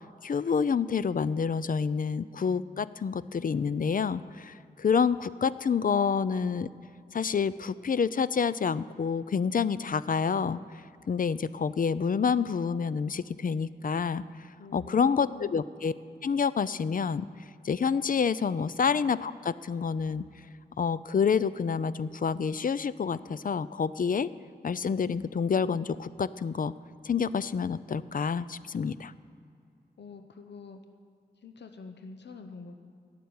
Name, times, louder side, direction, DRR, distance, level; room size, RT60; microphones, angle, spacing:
voice 1, 0.2-6.7 7.1-10.6 11.1-14.2 14.7-15.9 16.2-17.3 17.6-20.2 20.8-24.3 24.6-26.7 27.0-29.1, left 6 dB, 50° left, 16 dB, 0.4 m, -28 dB
voice 2, 14.6-15.6 30.0-30.8 31.4-32.8, left 4 dB, 80° left, 6 dB, 0.8 m, -46 dB
13.0 x 6.8 x 9.4 m, 2.4 s
wide cardioid pair, 115°, 18 cm